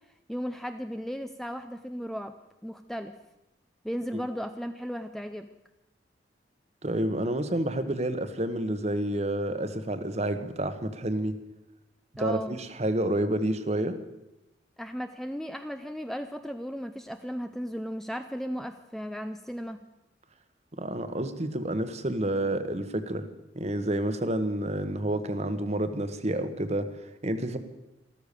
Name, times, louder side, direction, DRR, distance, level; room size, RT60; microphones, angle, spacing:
voice 1, 0.3-2.3 2.6-3.2 3.8-5.5 12.2-12.6 14.8-19.8, equal, ahead, 8 dB, 0.5 m, -35 dB
voice 2, 6.8-11.3 12.2-14.0 20.8-23.3 23.5-26.9 27.2-27.6, right 1 dB, 35° right, 10 dB, 1.1 m, -29 dB
14.0 x 13.5 x 6.7 m, 0.92 s
head